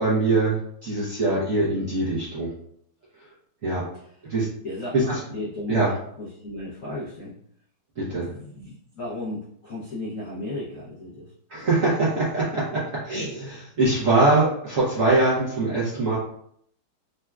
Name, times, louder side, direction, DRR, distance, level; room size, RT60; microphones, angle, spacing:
voice 1, 0.0-2.5 3.6-3.8 4.3-4.5 4.9-5.2 5.7-5.9 8.0-8.3 11.5-16.2, right 2 dB, 60° right, -8 dB, 0.8 m, -23 dB
voice 2, 4.6-5.8 6.2-7.3 8.1-11.2 11.8-12.0, left 2 dB, 75° left, -7 dB, 0.7 m, -35 dB
4.1 x 2.2 x 2.3 m, 0.67 s
omnidirectional pair, 2.3 m